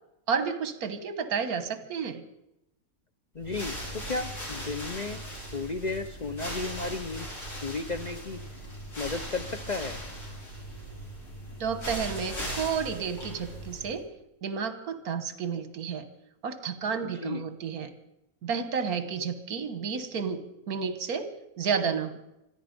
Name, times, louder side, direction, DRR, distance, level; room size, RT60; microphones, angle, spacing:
voice 1, 0.3-2.2 11.6-14.1 14.4-16.1 16.4-17.9 18.4-20.4 20.7-21.3 21.6-22.2, right 6 dB, 75° right, 11 dB, 1.7 m, -31 dB
voice 2, 3.3-5.2 5.5-7.3 7.6-8.4 9.0-10.0 17.0-17.4, left 3 dB, 40° left, 7 dB, 0.6 m, -34 dB
sound 1, 3.4-14.0, equal, 75° left, 5.0 m, -39 dB
25.5 x 11.0 x 5.2 m, 0.88 s
omnidirectional pair, 1.6 m